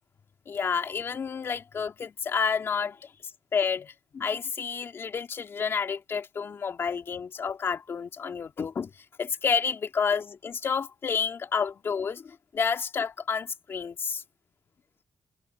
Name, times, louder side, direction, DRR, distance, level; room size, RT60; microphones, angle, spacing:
voice 1, 0.5-3.1 3.5-8.9 9.2-14.2, left 6 dB, 55° left, 2.4 m, -30 dB
cardioid pair, 65°, 5 cm